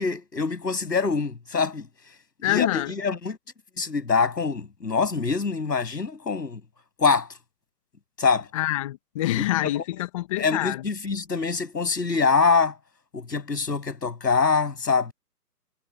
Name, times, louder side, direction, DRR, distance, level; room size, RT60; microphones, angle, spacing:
voice 1, 0.0-1.9 2.4-3.4 3.8-6.6 7.0-7.3 8.2-8.5 9.3-9.4 10.4-12.7 13.1-15.1, left 5 dB, 80° left, 7.8 m, -24 dB
voice 2, 2.4-2.9 8.5-10.8, left 15 dB, 20° left, 1.6 m, -26 dB
hypercardioid pair, 160°, 49 cm